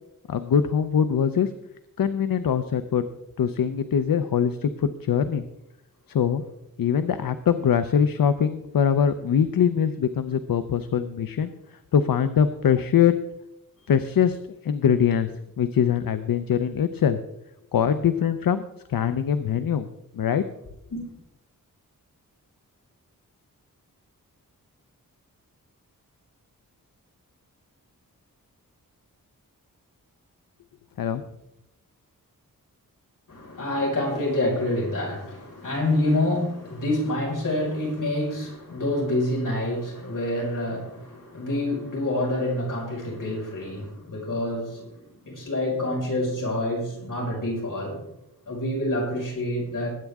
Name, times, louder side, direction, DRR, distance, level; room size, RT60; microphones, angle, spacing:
voice 1, 0.3-1.5 2.0-3.0 3.4-5.4 6.1-6.4 6.8-11.5 11.9-13.1 13.9-14.4 14.6-15.3 15.6-17.2 17.7-18.6 18.9-19.9 20.1-20.4 31.0-31.2, left 8 dB, 80° left, 11 dB, 0.7 m, -22 dB
voice 2, 33.3-48.0 48.5-50.0, left 1 dB, 65° left, -3 dB, 5.4 m, -27 dB
20.0 x 9.2 x 3.6 m, 0.83 s
wide cardioid pair, 140°, 34 cm